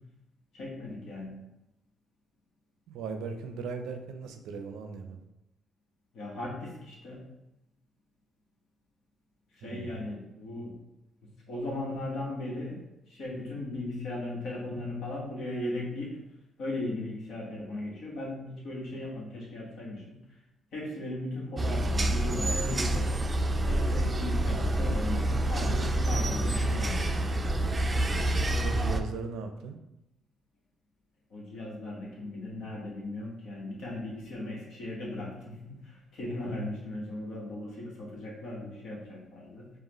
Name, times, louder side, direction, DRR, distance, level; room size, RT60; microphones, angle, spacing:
voice 1, 0.5-1.4 6.1-7.2 9.5-10.7 11.5-12.8 13.1-16.2 16.6-20.1 20.7-23.1 23.7-27.1 31.3-39.7, left 1 dB, 75° left, -3 dB, 1.4 m, -37 dB
voice 2, 2.9-5.2 9.6-10.0 28.6-29.8 36.5-36.7, right 5 dB, 90° right, 6 dB, 0.5 m, -38 dB
sound 1, 21.6-29.0, right 1 dB, 25° right, 0.4 m, -27 dB
4.9 x 2.5 x 3.0 m, 0.88 s
cardioid pair, 90°, 0 cm